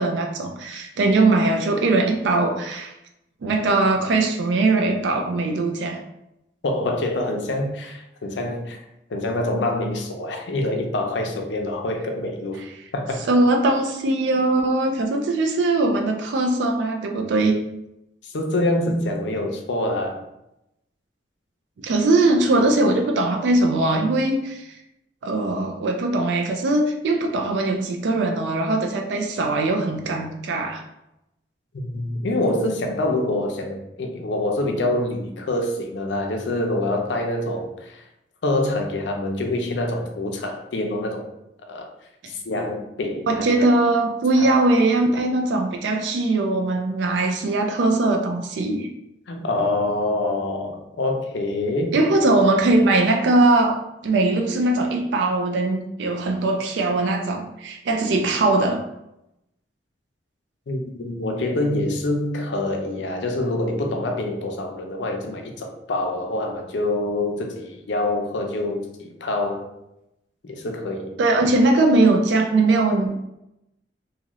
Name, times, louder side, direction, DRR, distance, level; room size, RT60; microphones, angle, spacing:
voice 1, 0.0-2.9 3.4-6.0 13.3-17.6 21.8-24.7 25.2-30.8 43.3-48.9 51.9-53.8 54.0-58.8 71.2-73.2, right 2 dB, 80° right, 3 dB, 0.4 m, -20 dB
voice 2, 6.6-8.8 9.1-12.6 12.9-13.3 18.2-20.2 31.8-38.1 38.4-41.3 41.7-41.9 42.3-43.7 44.4-44.5 49.3-52.0 60.7-69.6 70.4-71.1, left 1 dB, 90° left, 3 dB, 0.5 m, -26 dB
2.7 x 2.5 x 3.0 m, 0.86 s
head